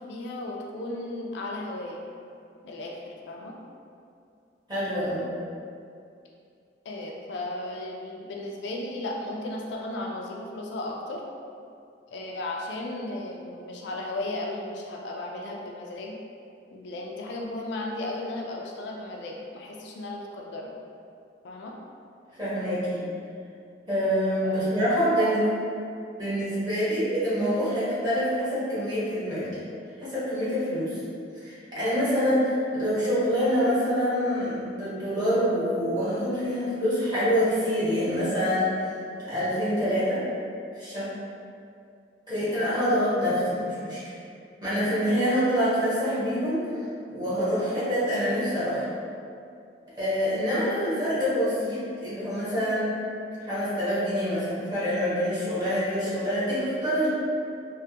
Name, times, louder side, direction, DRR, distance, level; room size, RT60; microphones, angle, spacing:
voice 1, 0.0-2.0 2.6-3.6 6.8-11.2 12.1-16.2 16.7-20.7 21.4-21.7 24.4-24.6 25.2-25.3, left 2 dB, 65° left, -1 dB, 0.3 m, -35 dB
voice 2, 4.7-5.3 22.4-23.0 23.9-25.4 26.2-29.6 30.0-31.0 31.3-38.8 39.2-40.2 40.7-41.1 42.3-44.0 44.6-46.7 47.1-48.9 50.0-52.9 53.5-57.1, equal, 25° right, -12 dB, 1.2 m, -26 dB
3.2 x 2.1 x 2.8 m, 2.5 s
head